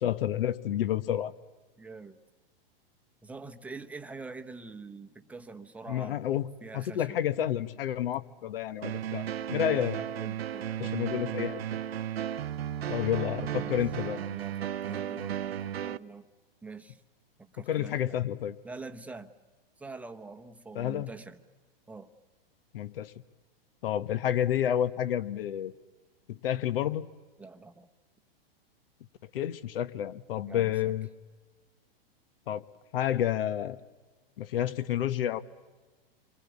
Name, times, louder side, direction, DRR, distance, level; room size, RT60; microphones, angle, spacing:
voice 1, 0.0-1.3 5.9-9.9 10.8-11.6 12.9-14.2 17.6-18.6 20.7-21.1 22.7-23.1 23.8-25.7 26.3-27.1 29.3-31.1 32.5-32.6 32.9-33.8 34.4-35.4, left 11 dB, 70° left, 13 dB, 1.4 m, -30 dB
voice 2, 1.8-2.2 3.2-6.2 6.6-7.2 9.7-11.0 13.5-13.8 14.2-16.3 16.6-17.0 17.4-18.2 18.6-19.3 19.8-21.4 21.9-22.1 27.4-27.9 30.5-30.9, right 3 dB, 5° right, 6 dB, 1.0 m, -45 dB
sound 1, 8.8-16.0, right 10 dB, 85° right, 0.9 m, -34 dB
28.5 x 24.0 x 8.5 m, 1.4 s
hypercardioid pair, 135°, 30 cm